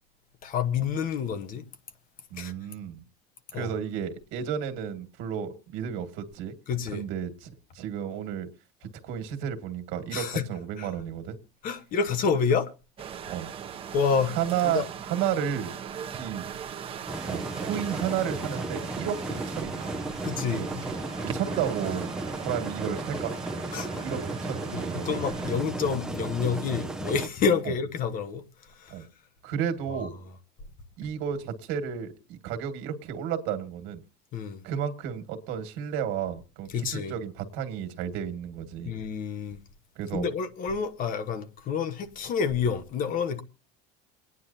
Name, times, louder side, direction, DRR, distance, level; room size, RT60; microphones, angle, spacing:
voice 1, 0.4-1.6 2.4-2.5 3.5-3.7 6.7-7.0 10.1-10.4 10.8-10.9 11.6-12.7 13.9-14.3 14.6-14.9 20.2-20.8 23.7-24.1 24.7-28.4 28.8-29.1 29.9-30.1 34.3-34.6 36.7-37.2 38.8-39.6 40.1-43.4, left 6 dB, 40° left, 1.1 m, -28 dB
voice 2, 2.3-3.0 3.5-6.5 6.9-8.5 8.8-11.4 13.3-13.5 14.4-15.7 16.1-16.5 17.2-19.9 20.4-20.7 21.2-22.1 22.4-23.3 24.0-25.2 27.7-27.8 28.9-29.1 29.4-30.2 31.0-34.0 34.6-38.9 40.0-40.3, right 8 dB, 65° right, 1.9 m, -32 dB
sound 1, 13.0-25.6, right 8 dB, 25° right, 0.9 m, -39 dB
sound 2, 17.1-27.3, right 2 dB, 5° right, 0.7 m, -34 dB
28.0 x 9.6 x 2.7 m
cardioid pair, 150°, 21 cm